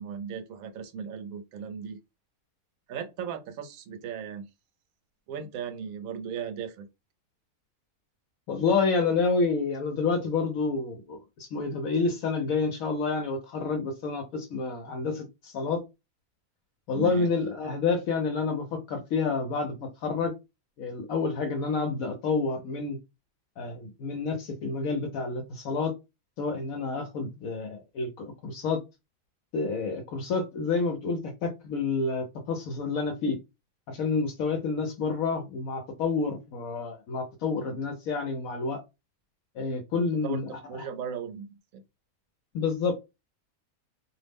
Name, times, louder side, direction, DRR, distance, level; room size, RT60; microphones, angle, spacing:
voice 1, 0.0-2.0 2.9-4.5 5.3-6.9 16.9-17.3 40.2-41.5 41.7-41.8, right 7 dB, 75° right, 1.0 m, -37 dB
voice 2, 8.5-15.8 16.9-20.3 20.8-23.0 23.6-25.9 26.4-28.8 29.5-33.4 33.9-38.8 39.6-40.8 42.5-42.9, left 4 dB, 75° left, 1.0 m, -29 dB
2.6 x 2.0 x 3.3 m
omnidirectional pair, 1.5 m